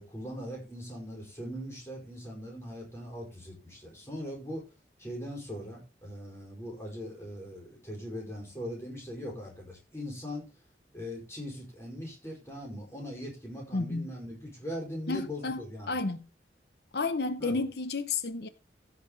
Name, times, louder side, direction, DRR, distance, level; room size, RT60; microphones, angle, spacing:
voice 1, 0.0-4.7 5.0-10.5 10.9-16.0 17.4-17.6, equal, 15° left, 4.9 m, -40 dB
voice 2, 13.7-14.1 15.1-16.3 16.9-18.5, left 3 dB, 65° left, 0.9 m, -31 dB
15.5 x 6.0 x 4.0 m
head